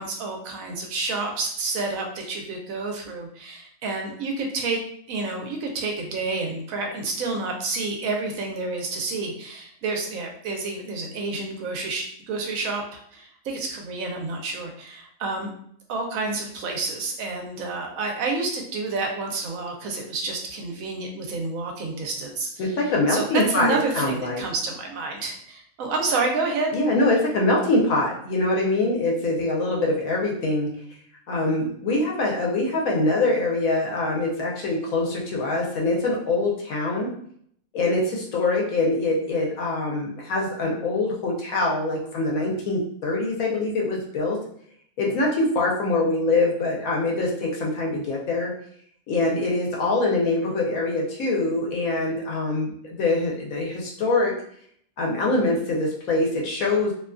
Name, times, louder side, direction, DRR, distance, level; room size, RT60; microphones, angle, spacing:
voice 1, 0.0-4.8 5.1-15.5 15.9-22.5 23.1-26.7, right 3 dB, 75° right, 1 dB, 1.0 m, -29 dB
voice 2, 22.6-24.4 26.7-30.7 31.3-37.1 37.7-44.4 45.0-48.5 49.1-54.3 55.0-56.9, left 2 dB, 80° left, -2 dB, 1.0 m, -24 dB
2.7 x 2.2 x 2.4 m, 0.64 s
omnidirectional pair, 1.5 m